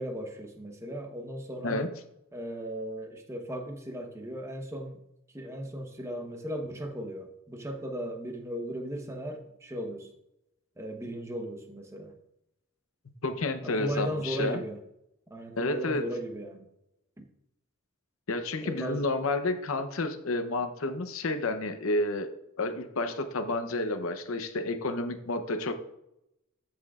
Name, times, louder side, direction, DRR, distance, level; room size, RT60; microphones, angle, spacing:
voice 1, 0.0-1.9 2.3-5.0 5.3-10.1 10.8-12.1 13.6-14.8 15.3-16.7 17.2-17.3 18.6-19.1, equal, 15° right, 3 dB, 1.0 m, -36 dB
voice 2, 13.2-14.6 15.6-16.0 18.3-22.3 22.6-25.7, left 2 dB, 70° left, 9 dB, 0.8 m, -30 dB
14.0 x 6.1 x 2.4 m, 0.84 s
head